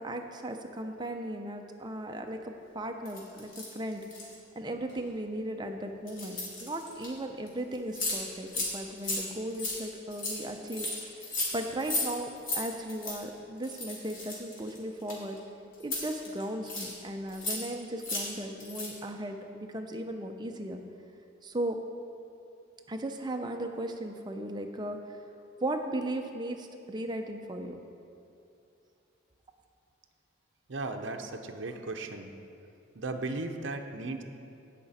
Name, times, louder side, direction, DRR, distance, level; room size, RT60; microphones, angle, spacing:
voice 1, 0.0-4.1 4.6-11.3 11.5-15.4 15.8-20.8 21.4-21.8 22.9-25.2 25.6-27.8, right 1 dB, 20° right, 4 dB, 0.6 m, -36 dB
sound 1, 3.0-4.3 4.9-5.1 6.1-7.1 7.5-7.6 7.7-8.2 8.5-8.7 9.0-12.1 12.4-12.6 12.9-13.2 13.6-15.4 15.8-16.9 17.3-17.7 18.0-18.3 18.6-19.0, left 2 dB, 75° left, 2.7 m, -35 dB
voice 2, 30.7-32.3 32.9-34.2, right 2 dB, 65° right, 4 dB, 0.7 m, -36 dB
16.5 x 5.9 x 4.2 m, 2.7 s
head